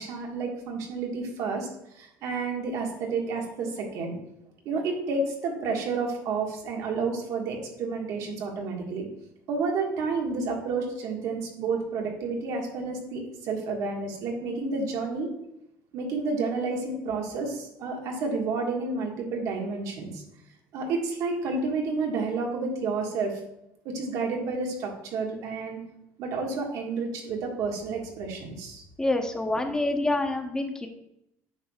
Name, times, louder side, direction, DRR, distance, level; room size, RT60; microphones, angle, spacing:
voice 1, 0.0-1.7 1.9-4.1 4.6-9.1 9.5-15.3 15.9-20.2 20.7-23.4 23.8-25.8 26.2-28.8, right 4 dB, 70° right, 1 dB, 1.6 m, -30 dB
voice 2, 29.0-30.9, left 2 dB, 10° left, 5 dB, 0.8 m, -27 dB
8.8 x 6.0 x 2.4 m, 0.83 s
cardioid pair, 130°, 6 cm